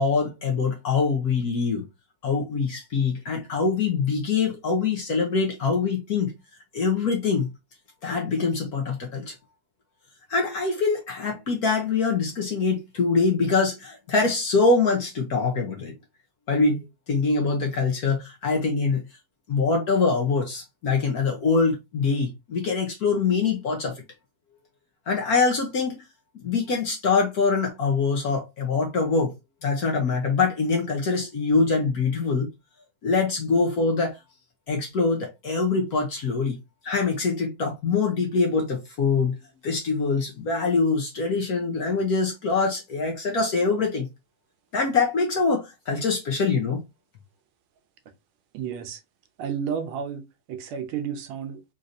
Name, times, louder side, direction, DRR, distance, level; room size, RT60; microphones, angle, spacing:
voice 1, 0.0-1.8 2.2-6.3 6.7-7.5 8.0-9.4 10.3-15.9 16.5-19.0 19.5-24.0 25.1-26.1 26.4-29.3 29.6-32.5 33.0-34.2 34.7-36.6 36.8-44.1 44.7-46.8, left 4 dB, 60° left, 1.0 m, -24 dB
voice 2, 48.5-49.0 49.4-51.7, right 7 dB, 85° right, 1.5 m, -32 dB
4.0 x 3.1 x 2.6 m
omnidirectional pair, 2.3 m